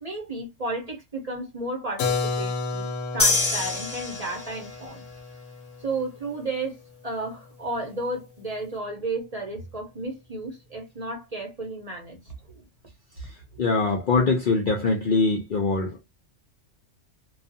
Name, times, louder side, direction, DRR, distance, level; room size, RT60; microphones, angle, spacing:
voice 1, 0.0-2.9 3.1-5.0 5.8-12.6 14.3-14.4, right 2 dB, 35° right, 0.7 m, -33 dB
Keyboard (musical), 2.0-7.6, left 4 dB, 85° left, 1.1 m, -32 dB
sound 1, 3.2-4.8, left 3 dB, 10° left, 0.9 m, -25 dB
voice 2, 13.6-16.0, left 4 dB, 60° left, 0.5 m, -23 dB
2.4 x 2.3 x 2.6 m
omnidirectional pair, 1.3 m